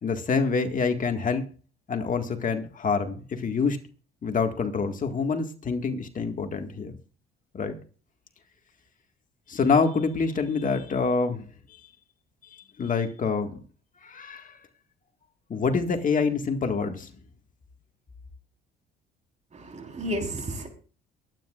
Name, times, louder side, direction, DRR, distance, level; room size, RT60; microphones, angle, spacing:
voice 1, 0.0-1.4 1.9-3.8 4.2-6.9 7.5-7.8 9.5-11.4 12.8-13.6 14.0-14.6 15.5-17.1, left 5 dB, 40° left, 1.9 m, -26 dB
voice 2, 19.5-20.7, equal, 35° right, 4.3 m, -32 dB
23.0 x 9.8 x 2.5 m
supercardioid pair, 90°, 21 cm